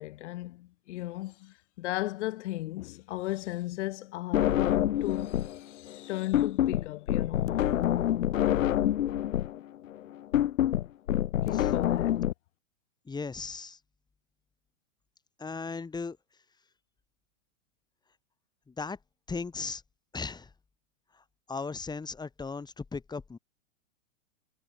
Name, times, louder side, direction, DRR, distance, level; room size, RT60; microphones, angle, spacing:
voice 1, 0.0-7.6 11.4-12.2, left 17 dB, 60° left, 7.4 m, -36 dB
sound 1, 4.3-5.6 5.9-12.3, left 12 dB, 75° left, 2.3 m, -27 dB
voice 2, 13.1-13.8 15.4-16.2 18.7-19.0 19.3-19.8 20.1-20.5 21.5-23.4, left 4 dB, 10° left, 3.3 m, -37 dB
hypercardioid pair, 130°, 40 cm